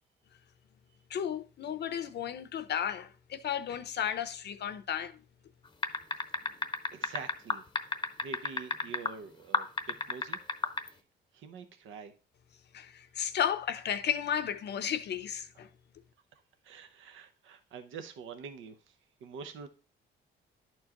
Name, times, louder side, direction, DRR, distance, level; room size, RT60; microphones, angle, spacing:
voice 1, 1.1-5.1 12.7-15.7, left 9 dB, 60° left, 0.7 m, -33 dB
sound 1, 5.8-9.1 9.5-10.9, left 4 dB, 25° left, 0.8 m, -30 dB
voice 2, 6.9-7.6 8.2-10.4 10.9-11.0 11.3-12.1 16.6-18.9 19.2-19.7, right 6 dB, 80° right, 0.9 m, -45 dB
11.0 x 4.5 x 2.9 m
cardioid pair, 90°, 20 cm